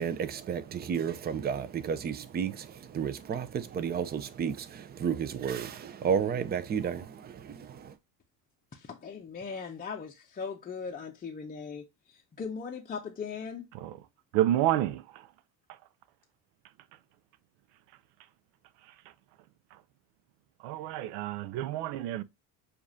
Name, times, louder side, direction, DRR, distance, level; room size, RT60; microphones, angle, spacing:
voice 1, 0.0-7.9, right 7 dB, 20° right, 0.5 m, -32 dB
voice 2, 8.7-13.7, left 5 dB, 20° left, 0.6 m, -39 dB
voice 3, 14.3-15.3 15.7-15.8 18.8-18.9 19.7-19.8 20.6-22.2, right 13 dB, 70° right, 0.7 m, -29 dB
6.9 x 2.5 x 2.7 m
supercardioid pair, 110°, 44 cm